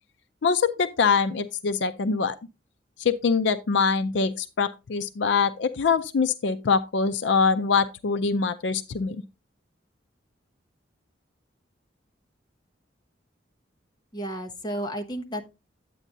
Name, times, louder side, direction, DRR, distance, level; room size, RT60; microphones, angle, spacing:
voice 1, 0.4-2.4 3.0-9.2, left 5 dB, 70° left, 0.5 m, -24 dB
voice 2, 14.1-15.4, right 1 dB, 20° left, 1.0 m, -32 dB
9.0 x 8.6 x 2.6 m
head